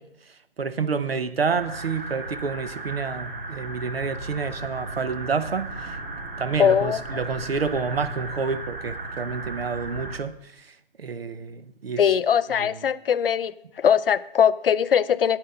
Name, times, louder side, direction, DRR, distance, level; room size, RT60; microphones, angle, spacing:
voice 1, 0.6-6.0 6.4-10.7 11.0-12.0 12.6-12.7, right 5 dB, 85° right, 0.9 m, -29 dB
sound 1, 1.5-10.2, right 2 dB, 65° right, 1.9 m, -35 dB
voice 2, 6.6-7.0 12.0-15.4, left 8 dB, 70° left, 0.5 m, -21 dB
8.8 x 7.9 x 5.4 m
figure-of-eight pair, 150°, 29 cm